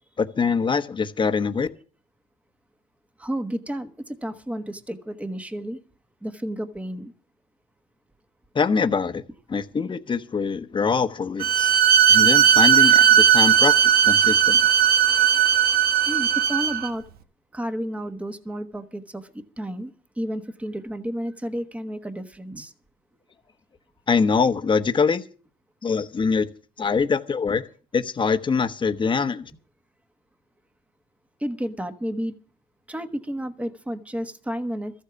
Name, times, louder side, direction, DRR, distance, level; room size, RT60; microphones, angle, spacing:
voice 1, 0.2-1.7 8.5-9.2 9.5-11.7 12.1-13.7 14.0-14.6 24.1-25.2 25.8-26.5 26.8-27.6 27.9-29.5, left 5 dB, 30° left, 1.1 m, -23 dB
voice 2, 3.2-5.8 6.2-7.1 16.1-17.0 17.5-19.9 20.2-22.7 31.4-32.3 32.9-34.9, equal, 10° right, 1.3 m, -31 dB
Bowed string instrument, 11.4-16.9, right 9 dB, 65° right, 1.1 m, -17 dB
14.0 x 8.2 x 7.0 m
cardioid pair, 110°, 17 cm